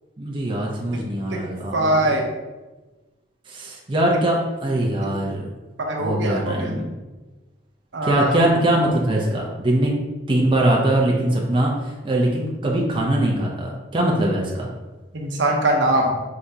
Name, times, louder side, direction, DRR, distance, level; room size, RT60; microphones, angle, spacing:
voice 1, 0.2-2.2 3.5-5.5 6.0-6.9 8.0-9.9 10.3-14.7, right 1 dB, 25° right, -2 dB, 0.6 m, -22 dB
voice 2, 1.7-2.3 5.8-6.7 7.9-8.4 15.1-16.2, right 1 dB, 75° right, 1 dB, 0.8 m, -22 dB
4.9 x 3.4 x 2.8 m, 1.2 s
head